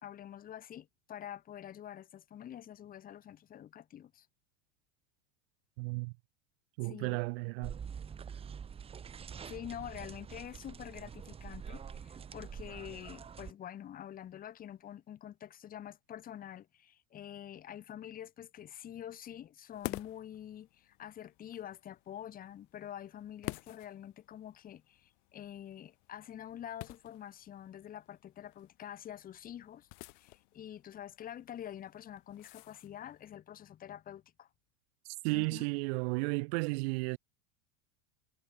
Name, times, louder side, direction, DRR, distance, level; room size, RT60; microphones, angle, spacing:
voice 1, 0.0-4.3 6.8-7.2 9.5-29.9 30.2-34.5 35.3-35.6, left 10 dB, 20° left, 1.4 m, -47 dB
voice 2, 5.8-6.1 6.8-7.8 35.2-37.2, right 29 dB, 50° right, 0.8 m, -33 dB
sound 1, 7.6-13.5, right 7 dB, 15° right, 1.2 m, -46 dB
sound 2, 19.7-33.3, left 32 dB, 55° left, 3.7 m, -50 dB
supercardioid pair, 150°, 39 cm